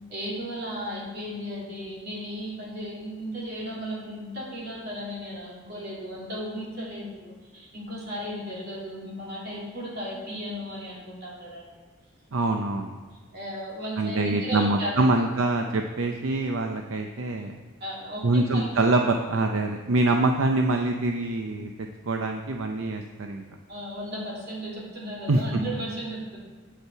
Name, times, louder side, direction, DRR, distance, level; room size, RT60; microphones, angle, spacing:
voice 1, 0.1-11.6 13.3-15.1 17.8-18.9 23.7-26.4, equal, 50° right, -5 dB, 3.0 m, -35 dB
voice 2, 12.3-13.0 14.0-17.6 18.2-23.4 25.3-25.4, right 2 dB, 75° right, 4 dB, 0.6 m, -25 dB
8.6 x 8.1 x 4.6 m, 1.4 s
head